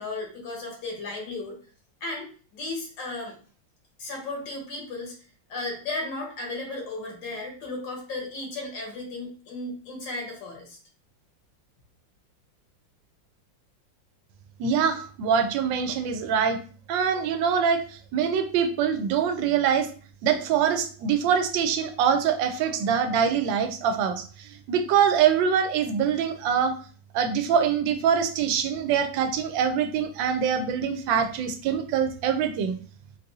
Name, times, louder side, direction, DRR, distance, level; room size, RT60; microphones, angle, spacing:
voice 1, 0.0-1.6 2.0-3.3 4.0-5.1 5.5-10.8, left 2 dB, 70° left, 0 dB, 1.7 m, -35 dB
voice 2, 14.6-16.6 16.9-19.9 20.2-26.8 27.1-32.7, right 7 dB, 80° right, 8 dB, 1.2 m, -24 dB
4.0 x 2.5 x 2.7 m, 0.40 s
omnidirectional pair, 2.1 m